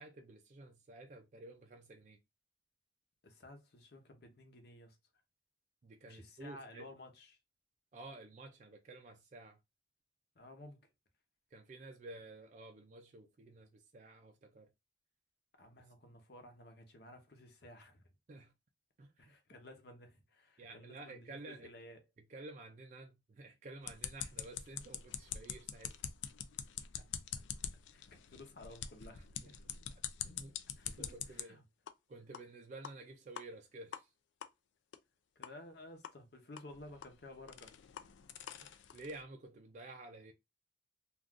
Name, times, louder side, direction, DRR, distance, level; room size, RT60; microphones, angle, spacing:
voice 1, 0.0-2.2 5.8-6.9 7.9-9.6 11.5-14.7 18.3-18.5 19.0-19.4 20.6-21.7 22.3-26.0 29.1-29.5 30.2-30.5 30.8-31.6 32.1-34.1 38.6-40.3, right 2 dB, 40° right, 0.3 m, -52 dB
voice 2, 3.2-5.0 6.0-7.4 10.3-10.8 15.6-18.1 19.2-22.0 27.0-27.1 27.9-29.6 30.8-31.6 35.4-37.7, left 1 dB, 55° left, 0.8 m, -54 dB
sound 1, 23.8-31.4 31.9-32.0 32.3-32.4 32.8-32.9 33.4-33.5 33.9-34.0 34.4-34.5 34.9-35.0 35.4-35.5 36.0-36.1 36.6-39.2, left 9 dB, 75° left, 0.3 m, -45 dB
2.4 x 2.3 x 3.5 m
head